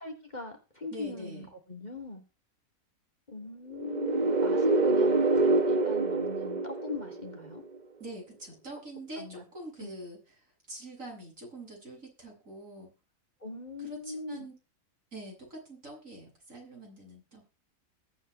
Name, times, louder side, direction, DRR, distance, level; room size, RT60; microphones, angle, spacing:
voice 1, 0.0-2.2 3.3-7.6 9.2-9.4 9.8-9.9 13.4-14.5, left 3 dB, 30° left, 4 dB, 2.9 m, -40 dB
voice 2, 0.9-1.5 8.0-10.2 10.7-12.9 13.8-14.6 15.1-17.4, right 1 dB, 65° right, -1 dB, 8.0 m, -44 dB
sound 1, 3.8-7.6, right 3 dB, 35° right, 1.2 m, -26 dB
21.5 x 9.1 x 3.3 m, 0.30 s
omnidirectional pair, 1.5 m